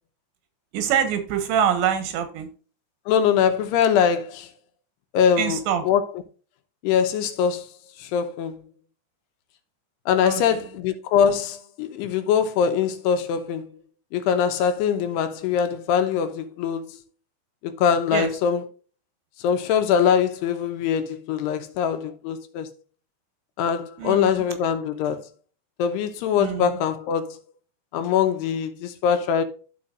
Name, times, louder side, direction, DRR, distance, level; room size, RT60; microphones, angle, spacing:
voice 1, 0.7-2.5 5.4-5.8 10.2-10.6 18.1-18.3 24.0-24.5 26.4-26.8, right 8 dB, 85° right, 3.6 m, -25 dB
voice 2, 3.1-4.5 5.1-5.6 5.9-6.0 6.8-7.7 8.0-8.6 10.1-13.7 14.1-16.9 17.6-18.6 19.4-22.7 23.6-25.2 25.8-27.4 27.9-29.4, left 7 dB, 80° left, 2.9 m, -22 dB
13.5 x 4.9 x 2.5 m
omnidirectional pair, 5.0 m